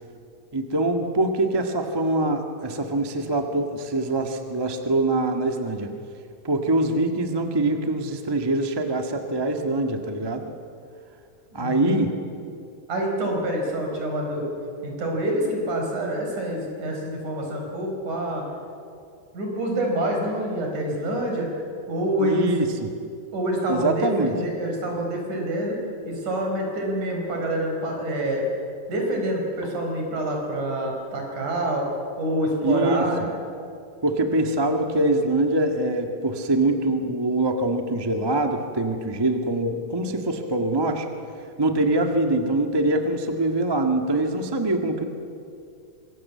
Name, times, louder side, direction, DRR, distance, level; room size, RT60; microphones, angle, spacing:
voice 1, 0.5-5.9 6.4-10.5 11.5-12.1 22.2-22.9 23.7-24.3 32.6-33.3 34.0-41.1 41.6-45.0, right 2 dB, 25° right, 5 dB, 0.5 m, -24 dB
voice 2, 11.5-12.1 12.9-14.5 14.8-18.5 19.3-21.5 21.9-22.5 23.3-25.8 26.0-28.4 28.9-31.9 32.2-33.3, right 1 dB, 60° right, 1 dB, 5.9 m, -26 dB
25.5 x 21.0 x 8.6 m, 2.5 s
omnidirectional pair, 3.9 m